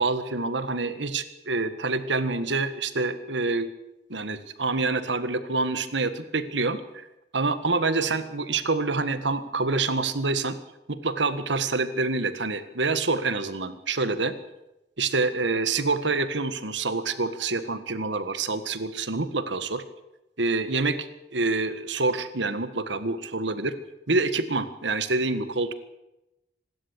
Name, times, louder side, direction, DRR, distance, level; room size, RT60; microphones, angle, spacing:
voice 1, 0.0-3.7 4.1-7.1 7.3-10.6 10.9-14.3 15.0-19.8 20.4-21.1 21.3-23.7 24.1-25.7, right 3 dB, 85° right, 11 dB, 1.7 m, -27 dB
25.5 x 12.5 x 8.3 m, 0.94 s
head